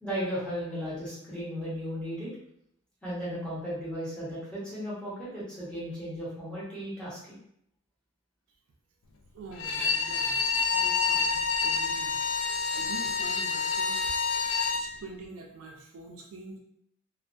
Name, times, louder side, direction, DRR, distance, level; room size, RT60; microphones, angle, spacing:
voice 1, 0.0-2.3 3.0-7.4, equal, 5° left, -9 dB, 0.9 m, -35 dB
voice 2, 9.3-12.2 12.7-14.0 14.7-16.6, right 3 dB, 85° right, 0 dB, 0.4 m, -45 dB
Bowed string instrument, 9.5-14.9, left 5 dB, 85° left, 0.3 m, -28 dB
2.3 x 2.2 x 2.4 m, 0.73 s
head